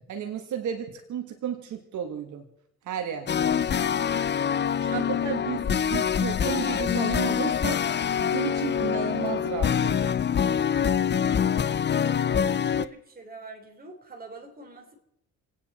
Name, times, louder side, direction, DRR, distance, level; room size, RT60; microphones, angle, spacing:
voice 1, 0.1-2.4 2.9-3.3 4.8-7.8 8.2-10.1, right 8 dB, 75° right, 5 dB, 1.7 m, -33 dB
sound 1, 3.3-12.9, left 8 dB, 35° left, 0.6 m, -25 dB
voice 2, 12.3-15.0, right 2 dB, 30° right, 3 dB, 3.7 m, -45 dB
28.5 x 9.6 x 4.3 m, 0.80 s
cardioid pair, 90°, 30 cm